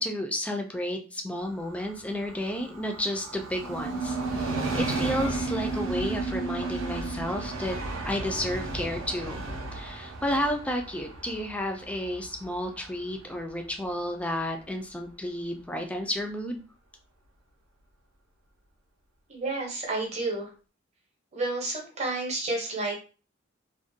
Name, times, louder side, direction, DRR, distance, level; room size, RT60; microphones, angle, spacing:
voice 1, 0.0-7.8 8.0-9.4 9.7-16.6, left 1 dB, 5° left, 3 dB, 0.3 m, -32 dB
Train, 1.4-14.7 15.0-15.1, right 2 dB, 75° right, 0.5 m, -37 dB
sound 1, 3.6-9.5, right 4 dB, 65° left, 0.5 m, -34 dB
voice 2, 19.3-20.5 21.3-23.0, right 2 dB, 35° right, 0 dB, 0.7 m, -30 dB
2.4 x 2.1 x 2.6 m, 0.36 s
head